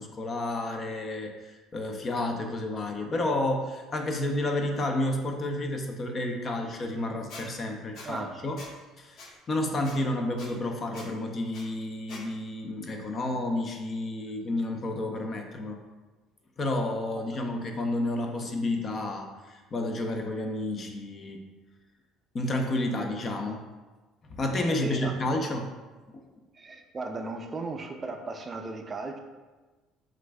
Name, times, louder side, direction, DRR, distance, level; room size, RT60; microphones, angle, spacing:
voice 1, 0.0-8.6 9.0-15.8 16.6-21.4 22.3-23.6 24.3-25.7 26.1-26.2, left 1 dB, 40° left, 3 dB, 0.7 m, -31 dB
Squeak, 7.3-7.4 8.0-8.1 8.6-8.7 9.2-9.3 9.8-10.0 10.4-10.5 10.9-11.1 11.5-11.6 12.1-12.2, left 3 dB, 60° left, 1.1 m, -44 dB
voice 2, 8.1-8.4 23.0-23.1 24.7-25.1 26.5-29.2, right 3 dB, 30° right, 4 dB, 0.4 m, -36 dB
7.5 x 2.5 x 2.3 m, 1.2 s
supercardioid pair, 85°, 0 cm